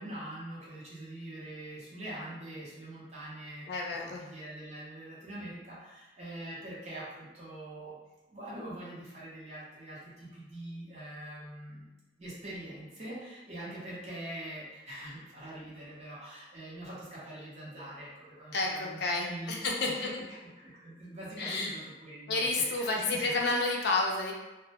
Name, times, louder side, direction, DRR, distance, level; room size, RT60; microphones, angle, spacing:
voice 1, 0.0-8.0 8.3-11.9 12.2-19.7 20.0-20.1 20.6-23.3, right 1 dB, 40° right, -7 dB, 0.7 m, -44 dB
voice 2, 3.7-4.2 18.5-20.1 21.4-21.7 22.3-24.3, left 3 dB, 65° left, 0 dB, 0.4 m, -30 dB
2.1 x 2.1 x 2.8 m, 1.1 s
head